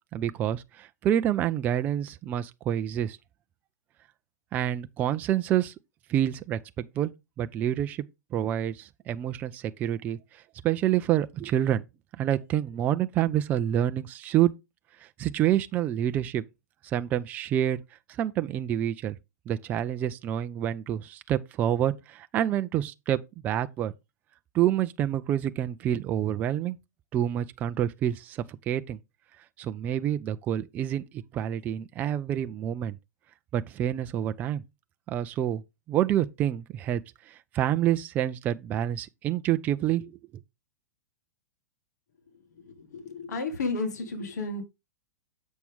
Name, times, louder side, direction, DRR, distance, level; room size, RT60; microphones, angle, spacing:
voice 1, 0.1-3.2 4.5-5.7 6.1-7.1 7.4-8.0 8.3-11.8 12.2-14.5 15.2-16.4 16.8-17.8 18.2-19.2 19.5-23.9 24.5-26.8 27.1-29.0 29.6-33.0 33.5-34.6 35.1-35.6 35.9-37.0 37.3-40.1, right 11 dB, 20° right, 0.3 m, -27 dB
voice 2, 42.7-44.6, left 3 dB, 80° left, 1.8 m, -32 dB
7.2 x 6.1 x 3.5 m
hypercardioid pair, 155°, 9 cm